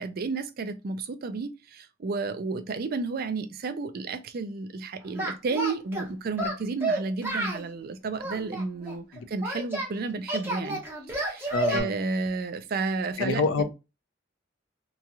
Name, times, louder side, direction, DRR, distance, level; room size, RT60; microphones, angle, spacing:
voice 1, 0.0-10.8 11.1-13.6, right 4 dB, 50° right, 0.4 m, -32 dB
Singing, 5.2-6.1 6.4-7.7 8.2-9.9 10.3-11.8, right 2 dB, 10° right, 0.9 m, -30 dB
voice 2, 11.5-11.9 13.2-13.6, left 4 dB, 80° left, 0.5 m, -26 dB
3.0 x 2.3 x 2.5 m
head